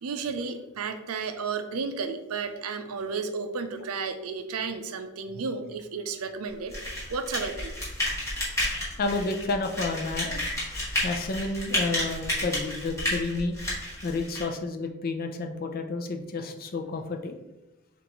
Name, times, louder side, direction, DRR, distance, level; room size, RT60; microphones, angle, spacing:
voice 1, 0.0-7.7, right 5 dB, 75° right, 8 dB, 0.5 m, -33 dB
sound 1, 6.7-14.4, left 1 dB, 15° left, 1.5 m, -31 dB
voice 2, 9.0-10.5 11.0-13.7 14.0-17.4, left 3 dB, 45° left, 5 dB, 0.5 m, -30 dB
6.9 x 2.6 x 3.0 m, 1.0 s
head